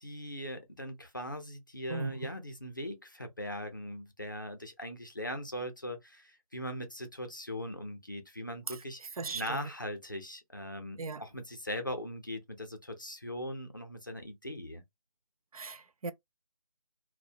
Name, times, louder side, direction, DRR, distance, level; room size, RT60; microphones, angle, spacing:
voice 1, 0.0-9.0 9.3-14.8, equal, 35° left, 0.4 m, -40 dB
voice 2, 1.9-2.3 8.7-8.8 9.2-9.7 11.0-11.2 15.5-16.1, right 4 dB, 75° right, 0.5 m, -37 dB
2.5 x 2.0 x 2.6 m
figure-of-eight pair, 180°, 19 cm